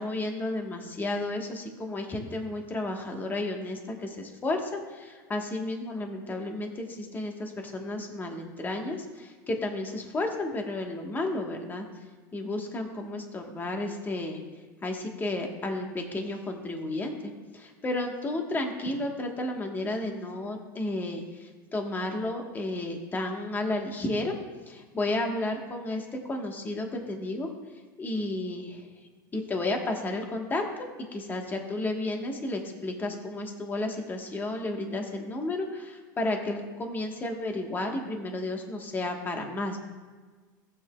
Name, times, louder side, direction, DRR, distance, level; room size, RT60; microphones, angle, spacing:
voice 1, 0.0-11.8 12.3-14.4 14.8-24.3 24.7-27.5 28.0-28.8 29.3-30.6 31.1-39.8, left 2 dB, 20° left, 2 dB, 1.4 m, -32 dB
15.5 x 8.3 x 2.3 m, 1.4 s
supercardioid pair, 115°, 10 cm